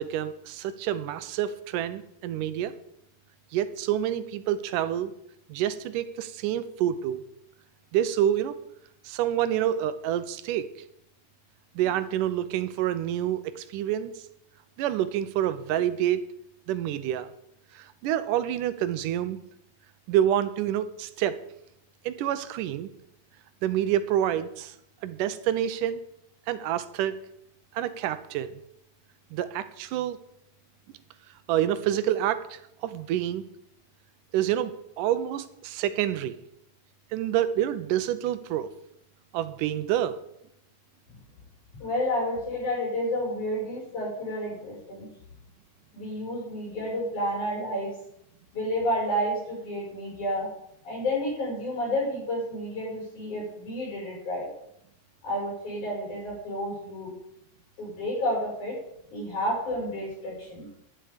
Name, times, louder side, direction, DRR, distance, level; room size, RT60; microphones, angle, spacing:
voice 1, 0.0-2.7 3.5-5.1 5.5-7.2 7.9-8.6 9.1-10.7 11.8-14.1 14.8-16.2 16.7-17.3 17.7-19.4 20.1-21.4 22.1-22.9 23.6-24.8 25.0-26.0 26.5-27.2 27.7-28.5 29.3-30.2 31.5-33.4 34.3-36.4 37.1-38.7 39.3-40.2, right 11 dB, 90° right, 13 dB, 2.3 m, -27 dB
voice 2, 41.8-45.1 45.9-47.9 48.5-50.5 50.8-54.5 55.2-57.1 57.8-58.8 59.1-60.7, equal, 65° left, -4 dB, 7.2 m, -30 dB
11.5 x 10.5 x 5.0 m, 0.77 s
omnidirectional pair, 3.7 m